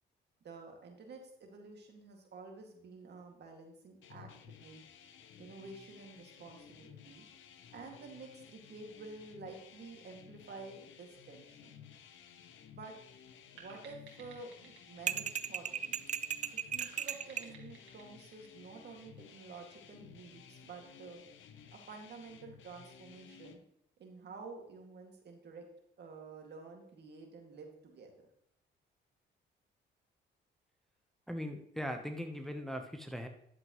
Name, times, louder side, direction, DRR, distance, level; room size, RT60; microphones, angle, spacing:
voice 1, 0.4-4.8 5.4-7.2 7.7-11.8 12.7-12.9 13.5-16.1 16.5-21.2 21.7-23.6 24.0-25.7 26.0-28.3, right 3 dB, 55° right, 2 dB, 2.3 m, -50 dB
sound 1, 4.0-23.6, left 8 dB, 75° left, 1.0 m, -56 dB
sound 2, 13.6-16.1 16.8-19.4, right 6 dB, 80° right, 2.1 m, -57 dB
sound 3, 15.1-17.5, right 8 dB, 40° right, 0.5 m, -36 dB
voice 2, 31.3-33.3, equal, ahead, 4 dB, 1.0 m, -39 dB
11.0 x 7.6 x 3.1 m, 0.72 s
cardioid pair, 90°, 20 cm